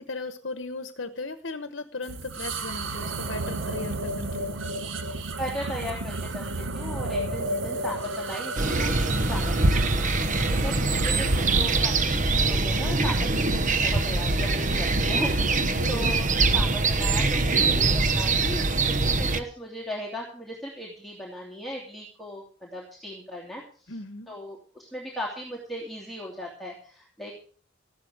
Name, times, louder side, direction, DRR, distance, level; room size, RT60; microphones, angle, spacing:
voice 1, 0.0-4.7 10.4-10.7 15.6-16.1 23.9-24.3, left 3 dB, 60° left, 10 dB, 1.1 m, -37 dB
sound 1, 2.0-11.8, right 2 dB, 70° right, 1.2 m, -33 dB
voice 2, 5.4-10.0 10.5-23.9 24.3-27.3, equal, ahead, -4 dB, 2.8 m, -37 dB
sound 2, 8.6-19.4, right 3 dB, 40° right, 1.1 m, -23 dB
14.5 x 12.0 x 5.0 m, 0.43 s
head